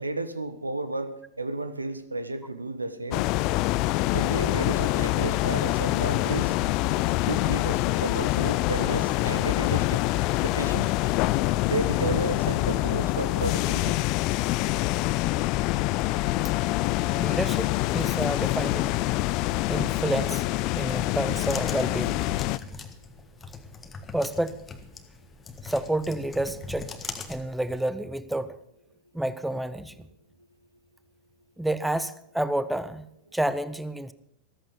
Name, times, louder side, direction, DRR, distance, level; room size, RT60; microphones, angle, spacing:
voice 1, 0.0-3.3 4.1-6.5 7.2-10.9 11.6-14.0, right 2 dB, 80° right, 12 dB, 1.2 m, -32 dB
sound 1, 3.1-22.6, left 18 dB, 40° left, 0.5 m, -25 dB
voice 2, 17.1-19.0 19.7-22.3 24.1-24.6 25.6-26.9 27.3-28.6 29.1-30.1 31.6-34.1, right 1 dB, 5° right, 15 dB, 0.7 m, -29 dB
sound 2, 20.8-27.8, left 4 dB, 15° left, 1.6 m, -41 dB
14.5 x 14.0 x 5.2 m, 0.77 s
figure-of-eight pair, 90°, 0 cm